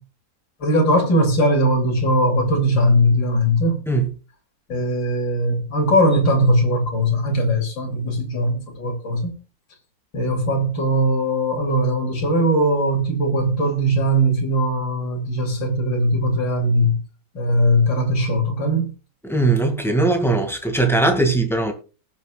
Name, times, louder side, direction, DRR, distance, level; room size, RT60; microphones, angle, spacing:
voice 1, 0.6-3.8 4.7-9.3 10.1-17.0 17.3-18.9, equal, 75° left, 3.3 m, -20 dB
voice 2, 19.2-21.7, right 2 dB, ahead, 1.8 m, -19 dB
19.5 x 7.4 x 2.3 m
omnidirectional pair, 2.0 m